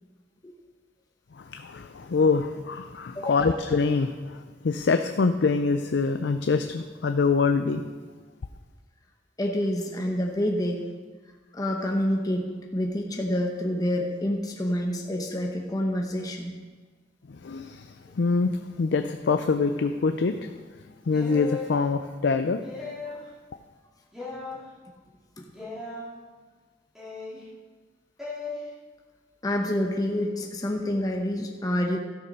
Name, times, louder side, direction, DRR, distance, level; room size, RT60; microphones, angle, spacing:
voice 1, 1.4-7.8 17.3-20.5 21.1-22.6, left 4 dB, 65° left, 8 dB, 0.4 m, -25 dB
voice 2, 3.1-3.6 9.4-10.9 11.5-16.6 25.4-25.5 29.4-32.0, left 1 dB, 20° left, 1 dB, 0.8 m, -28 dB
sound 1, 21.1-21.7 22.6-23.2 24.1-24.6 25.5-26.1 27.0-27.4 28.2-28.5, left 4 dB, ahead, 2.6 m, -36 dB
13.0 x 6.8 x 5.4 m, 1.4 s
head